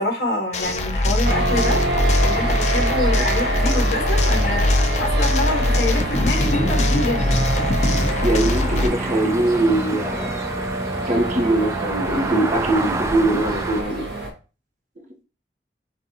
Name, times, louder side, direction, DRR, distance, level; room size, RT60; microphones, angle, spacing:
voice 1, 0.0-1.8 2.2-7.5, left 1 dB, 65° left, 1 dB, 1.5 m, -26 dB
sound 1, 0.5-8.9, left 1 dB, 40° left, 0.6 m, -21 dB
sound 2, 1.2-14.3, right 2 dB, 80° right, 1.2 m, -27 dB
sound 3, 7.4-13.8, right 2 dB, 15° right, 0.3 m, -29 dB
voice 2, 8.2-10.4 11.1-14.1, right 2 dB, 45° right, 2 dB, 1.0 m, -21 dB
7.3 x 2.5 x 2.9 m, 0.33 s
head